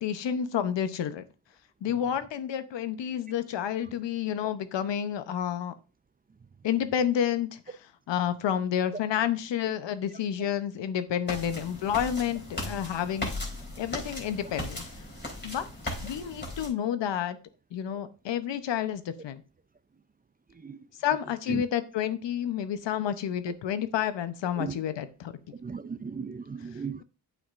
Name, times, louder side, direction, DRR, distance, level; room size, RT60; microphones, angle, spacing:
voice 1, 0.0-1.2 1.8-5.7 6.6-7.6 8.1-13.3 13.8-14.8 15.4-15.7 16.0-17.4 17.7-19.4 21.0-25.3, left 9 dB, 80° left, 0.9 m, -30 dB
sound 1, 11.3-16.7, left 1 dB, 25° left, 4.0 m, -37 dB
voice 2, 20.5-20.9 21.5-21.6 23.5-23.6 24.6-24.8 25.5-27.0, right 5 dB, 20° right, 0.4 m, -37 dB
8.6 x 8.3 x 2.5 m
cardioid pair, 60°, 42 cm